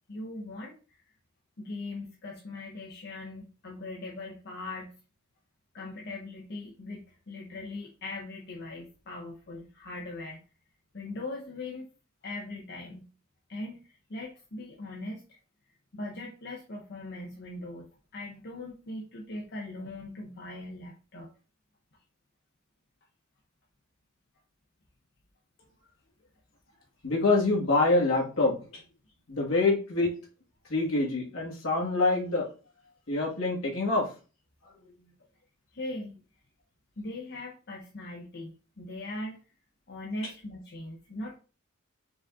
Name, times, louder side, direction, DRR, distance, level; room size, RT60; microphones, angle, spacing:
voice 1, 0.1-1.0 1.6-4.9 5.7-10.4 10.9-11.9 12.2-13.0 13.5-15.2 15.9-17.8 18.1-21.3 35.7-36.2 37.0-39.4 39.9-41.4, left 2 dB, 50° left, -1 dB, 0.7 m, -40 dB
voice 2, 27.0-28.8 29.3-30.1 30.7-32.5 33.1-34.1 40.2-40.3, left 2 dB, 65° left, -2 dB, 1.5 m, -26 dB
5.0 x 2.5 x 3.5 m, 0.35 s
head